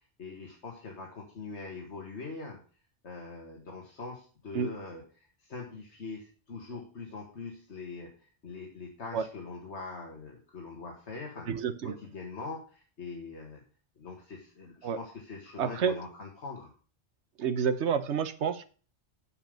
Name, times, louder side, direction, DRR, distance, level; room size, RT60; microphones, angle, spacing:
voice 1, 0.2-2.6 3.0-11.5 11.8-13.6 14.0-16.7, left 4 dB, 80° left, 0 dB, 2.0 m, -43 dB
voice 2, 11.5-12.0 14.8-15.0 15.6-16.0 17.4-18.7, right 7 dB, 85° right, 12 dB, 1.2 m, -29 dB
8.7 x 7.0 x 5.2 m, 0.39 s
omnidirectional pair, 1.1 m